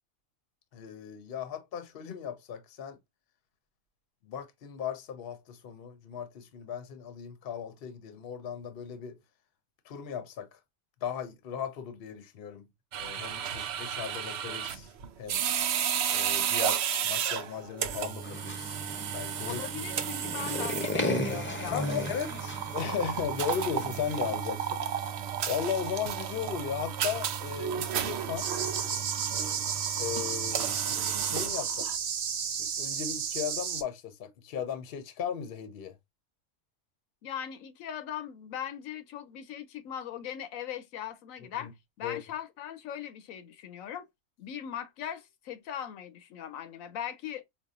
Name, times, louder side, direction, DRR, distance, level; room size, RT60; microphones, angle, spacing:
voice 1, 0.7-3.0 4.2-9.2 9.9-10.6 11.0-12.7 12.9-14.9 15.2-15.4 16.1-18.8 19.1-19.6 21.7-25.1 25.5-28.5 30.0-30.8 31.2-31.9 32.6-36.0 41.6-41.7 42.0-42.2, left 8 dB, 55° left, 0.8 m, -36 dB
sound 1, 12.9-32.0, right 9 dB, 65° right, 0.7 m, -33 dB
sound 2, 18.2-24.4, left 1 dB, 15° left, 0.5 m, -36 dB
voice 2, 19.4-22.1 22.3-22.4 37.2-41.7 42.0-44.1 44.4-47.4, left 10 dB, 90° left, 1.1 m, -39 dB
sound 3, 28.4-33.8, right 7 dB, 90° right, 0.3 m, -32 dB
5.3 x 2.3 x 2.3 m
omnidirectional pair, 1.4 m